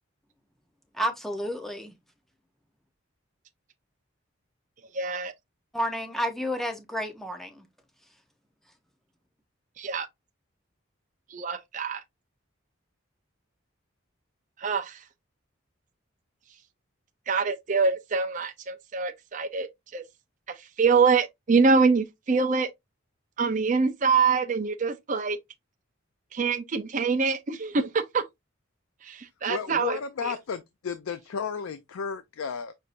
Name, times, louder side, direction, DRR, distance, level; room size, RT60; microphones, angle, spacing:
voice 1, 0.9-1.9 5.7-7.6, equal, ahead, 0.6 m, -30 dB
voice 2, 4.9-5.3 9.8-10.1 11.3-12.0 14.6-15.0 17.3-19.7 19.9-20.0 20.6-22.7 23.4-25.4 26.3-28.2 29.0-30.3, right 4 dB, 40° right, 0.5 m, -25 dB
voice 3, 29.5-32.7, left 6 dB, 90° left, 0.4 m, -33 dB
6.2 x 2.7 x 2.5 m
head